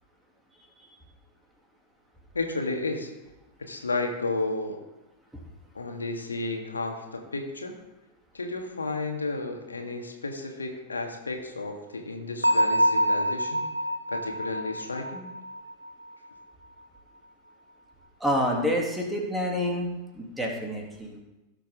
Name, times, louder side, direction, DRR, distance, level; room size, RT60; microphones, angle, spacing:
voice 1, 2.3-3.1 3.6-4.8 5.7-7.7 8.3-13.7 14.1-15.3, left 3 dB, 75° left, 3 dB, 1.8 m, -32 dB
Bell, 12.4-16.1, equal, 90° right, 0.8 m, -26 dB
voice 2, 18.2-19.9 20.1-21.2, equal, 5° right, -1 dB, 2.8 m, -28 dB
16.5 x 7.3 x 3.7 m, 1.0 s
figure-of-eight pair, 90°, 0 cm